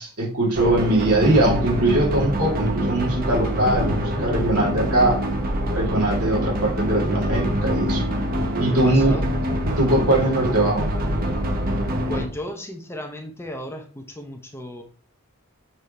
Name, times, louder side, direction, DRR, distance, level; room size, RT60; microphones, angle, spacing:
voice 1, 0.0-5.3 5.7-8.0 8.6-9.2 9.8-10.8, right 1 dB, 90° right, -1 dB, 2.2 m, -21 dB
sound 1, 0.5-12.2, equal, 40° right, 0.8 m, -25 dB
voice 2, 8.8-9.2 12.1-14.8, equal, 10° left, 4 dB, 0.7 m, -35 dB
6.6 x 3.5 x 4.2 m, 0.41 s
head